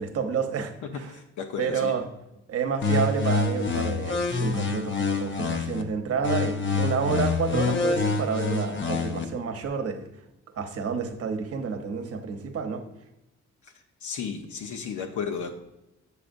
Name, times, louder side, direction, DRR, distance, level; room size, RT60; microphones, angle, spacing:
voice 1, 0.0-1.1 1.6-2.1 2.5-10.1 10.6-12.8, right 6 dB, 50° right, 6 dB, 1.0 m, -29 dB
voice 2, 0.8-1.9 14.0-15.5, left 6 dB, 75° left, 3 dB, 0.8 m, -33 dB
sound 1, 2.8-5.8 6.2-9.2, left 4 dB, 40° left, 0.8 m, -26 dB
7.7 x 6.8 x 2.6 m, 0.90 s
cardioid pair, 90°, 30 cm